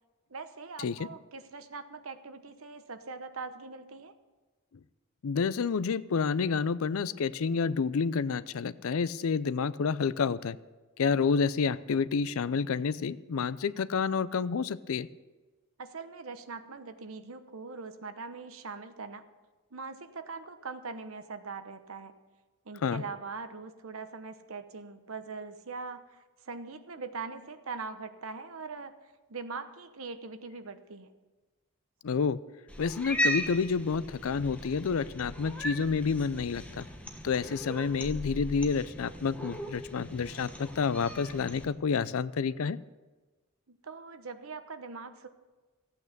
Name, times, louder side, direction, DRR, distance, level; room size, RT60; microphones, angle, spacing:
voice 1, 0.3-4.1 15.8-19.2 19.7-22.1 22.6-28.9 29.3-31.1 43.7-45.3, right 4 dB, 70° right, 9 dB, 1.0 m, -42 dB
voice 2, 5.2-10.6 11.0-15.1 22.8-23.0 32.0-32.4 32.8-36.9 37.2-42.8, left 5 dB, 70° left, 17 dB, 0.4 m, -29 dB
Cat, 32.7-41.7, equal, 5° left, 1.2 m, -37 dB
15.0 x 8.7 x 6.6 m, 1.3 s
head